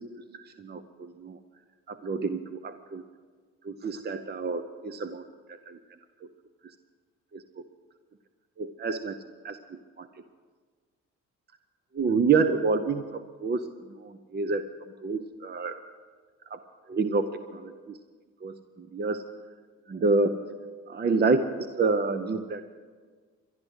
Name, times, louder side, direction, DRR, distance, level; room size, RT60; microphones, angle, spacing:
voice 1, 0.3-1.4 1.9-3.0 3.6-5.8 6.2-6.3 7.3-7.6 8.6-10.1 11.9-14.6 15.0-15.8 16.5-16.6 16.9-18.0 18.4-19.2 19.9-20.4 20.9-22.6, right 4 dB, 35° right, 10 dB, 0.7 m, -28 dB
12.0 x 11.5 x 8.0 m, 1.5 s
cardioid pair, 90°, 30 cm